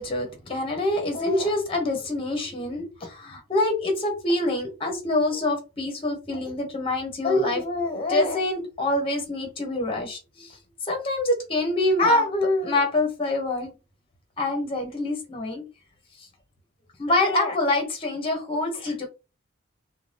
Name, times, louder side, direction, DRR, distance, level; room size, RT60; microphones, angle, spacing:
voice 1, 0.0-10.6 10.8-13.7 14.4-15.6 16.2-16.3 17.0-19.1, left 2 dB, 25° left, 3 dB, 0.8 m, -25 dB
2.7 x 2.2 x 3.2 m, 0.29 s
head